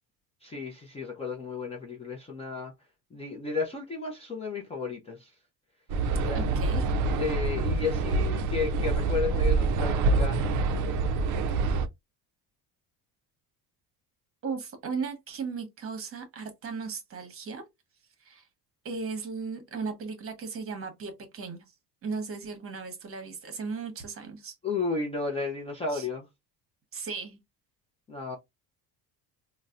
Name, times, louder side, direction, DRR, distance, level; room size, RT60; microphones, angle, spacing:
voice 1, 0.4-2.7 3.1-5.3 6.1-6.4 7.2-10.5 24.6-26.3 28.1-28.4, left 4 dB, 15° left, 0.4 m, -33 dB
sound 1, 5.9-11.9, right 3 dB, 50° right, 0.4 m, -26 dB
voice 2, 6.3-6.8 14.4-17.6 18.2-18.5 18.8-21.6 22.0-24.5 25.9-26.1 26.9-27.4, right 5 dB, 35° right, 0.9 m, -36 dB
3.9 x 2.1 x 2.3 m
cardioid pair, 150°, 39 cm